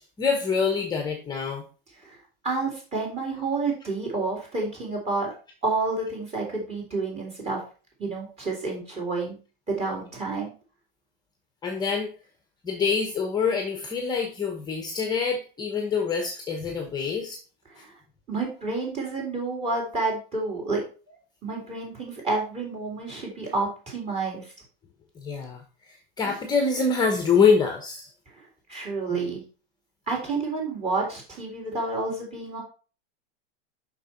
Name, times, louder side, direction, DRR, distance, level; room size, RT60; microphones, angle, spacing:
voice 1, 0.2-1.6 11.6-12.1 12.6-17.4 25.2-28.1, left 5 dB, 15° left, 4 dB, 1.0 m, -25 dB
voice 2, 2.4-5.3 5.6-7.6 8.0-9.4 9.7-10.5 17.7-17.9 18.3-20.8 21.1-21.2 21.4-24.5 28.7-29.4 30.1-32.6, right 3 dB, 20° right, -1 dB, 3.7 m, -29 dB
6.7 x 6.1 x 4.4 m, 0.36 s
supercardioid pair, 150°, 30 cm